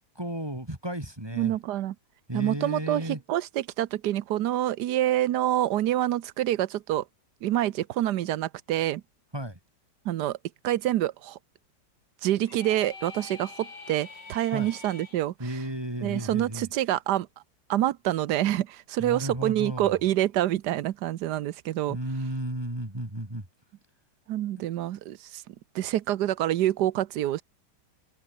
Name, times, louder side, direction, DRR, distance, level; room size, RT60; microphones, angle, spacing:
voice 1, 0.1-1.6 2.3-3.2 9.3-9.6 14.5-14.7 15.4-16.7 19.0-20.0 21.9-23.5, right 1 dB, 15° right, 3.0 m, -33 dB
voice 2, 1.3-1.9 2.3-7.0 7.4-9.0 10.0-10.4 10.6-11.4 12.2-15.3 16.0-17.3 17.7-22.0 24.3-25.4 25.7-27.4, right 13 dB, 75° right, 1.3 m, -27 dB
sound 1, 12.4-15.2, left 4 dB, 90° left, 4.4 m, -45 dB
open air
omnidirectional pair, 1.8 m